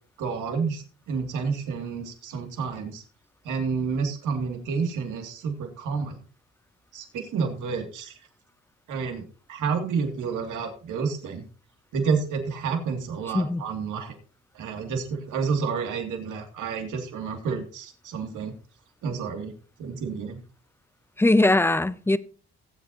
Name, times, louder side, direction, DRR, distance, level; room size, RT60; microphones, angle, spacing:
voice 1, 0.2-3.0 3.4-6.2 6.9-8.2 8.9-9.2 9.5-11.4 11.9-14.1 14.5-18.5 19.0-19.5 19.8-20.4, right 5 dB, 80° right, 2.4 m, -29 dB
voice 2, 21.2-22.2, left 2 dB, 10° left, 0.5 m, -20 dB
18.0 x 8.2 x 2.8 m
cardioid pair, 90°, 30 cm